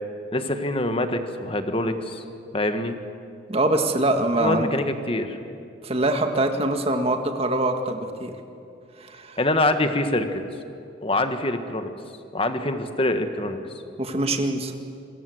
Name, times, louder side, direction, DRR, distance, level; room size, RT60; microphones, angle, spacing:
voice 1, 0.3-2.2 2.5-3.0 4.4-5.4 9.4-10.4 11.0-11.9 12.3-13.6, left 1 dB, 30° left, 8 dB, 1.6 m, -25 dB
voice 2, 3.5-4.7 5.8-8.3 9.0-9.4 14.0-14.7, right 2 dB, 30° right, 5 dB, 1.9 m, -23 dB
27.0 x 23.0 x 8.0 m, 2.6 s
head